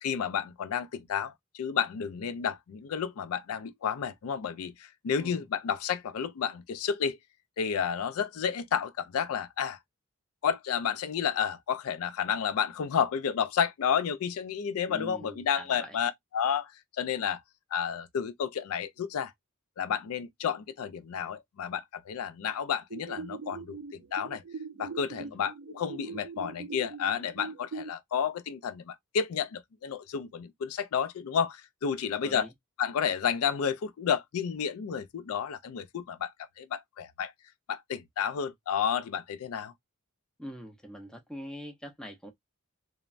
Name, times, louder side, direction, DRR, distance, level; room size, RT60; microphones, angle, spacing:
voice 1, 0.0-7.2 7.6-9.8 10.4-17.4 17.7-19.3 19.8-24.4 24.8-32.5 32.8-37.3 37.7-39.7, left 7 dB, 70° left, 0.4 m, -31 dB
voice 2, 14.9-16.0 25.2-25.4 32.2-32.5 40.4-42.3, equal, 5° left, 0.5 m, -43 dB
sound 1, 22.9-27.9, right 4 dB, 55° right, 0.4 m, -42 dB
3.1 x 2.0 x 2.4 m
head